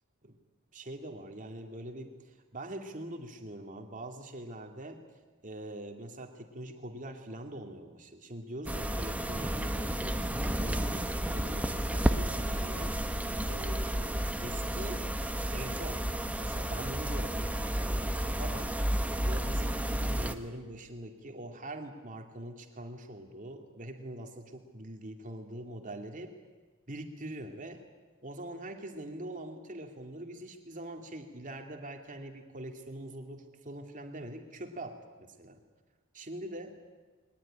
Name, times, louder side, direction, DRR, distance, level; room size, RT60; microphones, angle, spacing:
voice 1, 0.7-5.0 5.4-15.1 15.5-16.1 16.3-18.8 19.2-26.3 26.9-27.8 28.2-35.6 36.1-36.7, right 1 dB, 40° right, 4 dB, 2.5 m, -43 dB
sound 1, 8.7-20.4, equal, 5° right, 1.1 m, -32 dB
22.0 x 19.5 x 10.0 m, 1.4 s
head